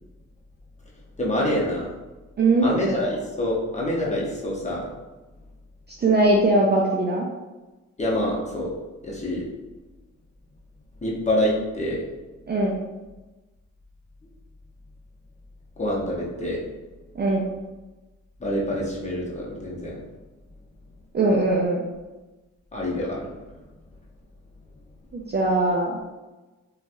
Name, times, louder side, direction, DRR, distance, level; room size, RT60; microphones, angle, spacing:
voice 1, 1.2-1.9 2.6-4.9 8.0-8.7 9.0-9.5 11.0-12.0 15.8-16.6 18.4-20.0 22.7-23.3, left 1 dB, 25° left, -4 dB, 0.9 m, -26 dB
voice 2, 2.4-2.7 6.0-7.3 12.5-12.7 17.2-17.4 21.1-21.9 25.1-26.0, right 2 dB, 35° right, -2 dB, 0.5 m, -20 dB
2.9 x 2.3 x 2.6 m, 1.1 s
cardioid pair, 70°, 31 cm